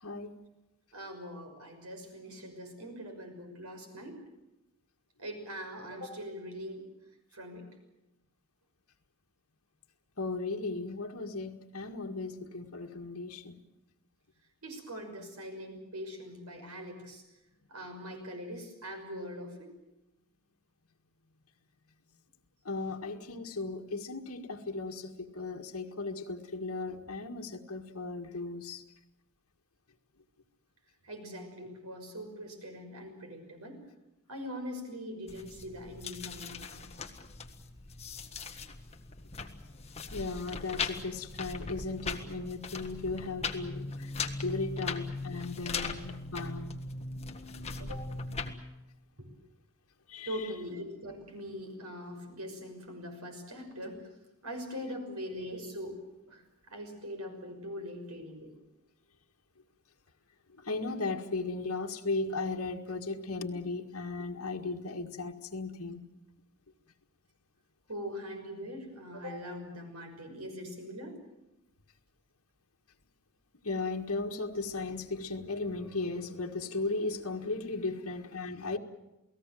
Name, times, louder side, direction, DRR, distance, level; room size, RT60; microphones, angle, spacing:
voice 1, 0.9-4.2 5.2-6.8 7.3-7.6 14.6-17.2 17.7-19.7 31.0-33.8 34.3-36.8 45.7-45.9 47.8-48.1 49.2-49.3 50.3-54.0 54.4-56.0 56.3-58.5 67.9-71.2, equal, 90° right, 6.0 m, -42 dB
voice 2, 10.2-13.6 22.7-28.8 40.1-44.1 44.4-46.8 50.1-50.5 60.6-66.0 73.6-78.8, left 3 dB, 75° left, 1.9 m, -36 dB
sound 1, 35.3-48.5, left 4 dB, 30° left, 1.6 m, -39 dB
29.0 x 18.5 x 7.7 m
head